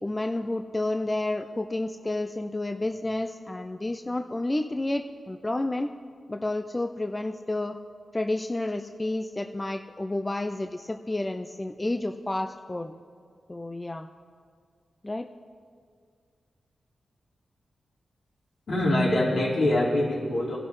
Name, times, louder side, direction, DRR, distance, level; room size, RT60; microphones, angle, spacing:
voice 1, 0.0-5.9 6.3-7.8 8.1-12.9 13.5-14.1 15.0-15.3, left 2 dB, 20° left, 7 dB, 0.5 m, -30 dB
voice 2, 18.7-20.6, left 1 dB, 70° left, -7 dB, 4.5 m, -24 dB
24.0 x 12.0 x 3.2 m, 2.1 s
cardioid pair, 65°, 0 cm